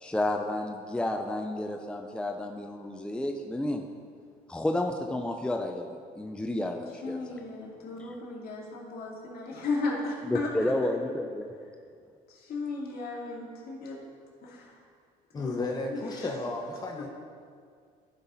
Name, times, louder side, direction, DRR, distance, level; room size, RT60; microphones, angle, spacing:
voice 1, 0.0-3.8 4.5-7.2 10.2-11.5, left 1 dB, 5° left, 3 dB, 0.5 m, -31 dB
voice 2, 7.0-10.5 12.3-14.0 14.4-14.8 15.3-16.0, left 3 dB, 65° left, -4 dB, 2.6 m, -35 dB
voice 3, 15.3-17.1, left 2 dB, 25° left, 0 dB, 1.0 m, -33 dB
15.0 x 5.7 x 4.1 m, 2.2 s
cardioid pair, 110°, 17 cm